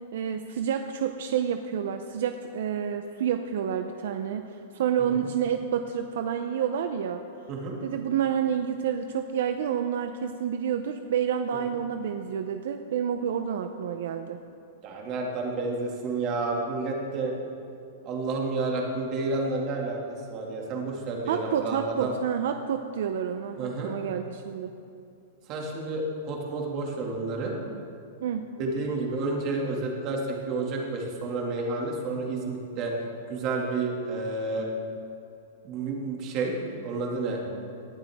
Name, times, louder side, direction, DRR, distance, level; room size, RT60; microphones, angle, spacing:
voice 1, 0.1-7.2 7.8-14.4 21.3-24.7 28.2-28.5, right 8 dB, 65° right, 7 dB, 0.7 m, -29 dB
voice 2, 14.8-17.3 18.0-20.0 20.3-22.1 23.6-23.9 25.5-27.5 28.6-32.9 33.3-34.7 35.6-36.6 36.8-37.4, right 3 dB, 30° right, -1 dB, 2.4 m, -30 dB
19.0 x 12.0 x 3.7 m, 2.6 s
supercardioid pair, 160°, 0 cm